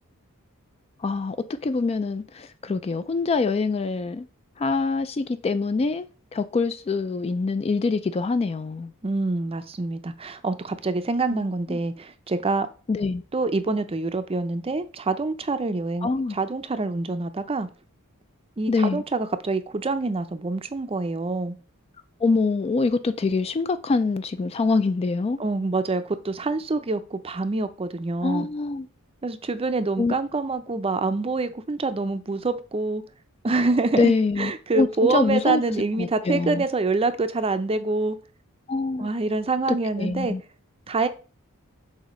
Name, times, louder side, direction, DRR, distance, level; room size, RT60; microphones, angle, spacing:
voice 1, 1.0-4.3 4.6-8.9 11.3-11.4 11.7-11.8 12.9-13.2 16.0-16.4 18.7-19.0 22.2-25.4 28.2-28.9 30.0-30.1 33.9-35.6 36.0-36.6 38.7-39.1 40.0-40.4, left 3 dB, 25° left, 0.3 m, -25 dB
voice 2, 9.0-12.7 13.3-17.7 18.6-21.5 25.4-28.5 29.2-33.0 33.4-34.1 34.4-38.2 39.0-40.3 40.9-41.1, right 3 dB, 25° right, 0.5 m, -26 dB
7.2 x 2.7 x 5.1 m
head